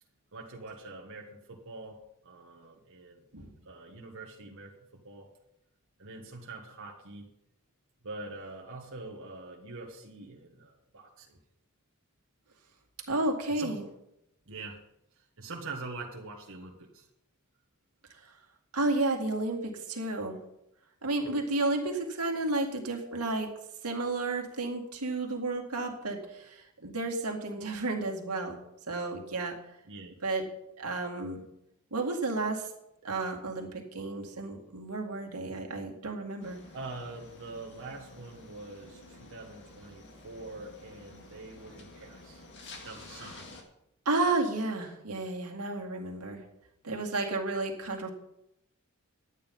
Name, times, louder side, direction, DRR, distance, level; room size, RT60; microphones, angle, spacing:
voice 1, 0.3-3.2 3.6-5.3 6.0-7.3 8.0-11.4 13.5-13.8 14.5-14.8 15.4-17.1 21.3-21.5 29.8-30.2 36.7-42.4 42.8-43.5, right 3 dB, 65° right, -1 dB, 1.4 m, -44 dB
voice 2, 13.1-13.8 18.2-18.3 18.7-20.4 21.0-23.5 23.8-28.6 28.9-29.6 30.2-30.5 30.8-31.4 31.9-32.7 33.0-36.6 44.1-46.4 46.8-48.1, right 2 dB, 90° right, 1 dB, 2.2 m, -32 dB
sound 1, 36.4-43.6, left 2 dB, 55° left, 2.0 m, -51 dB
11.5 x 9.2 x 5.4 m, 0.82 s
head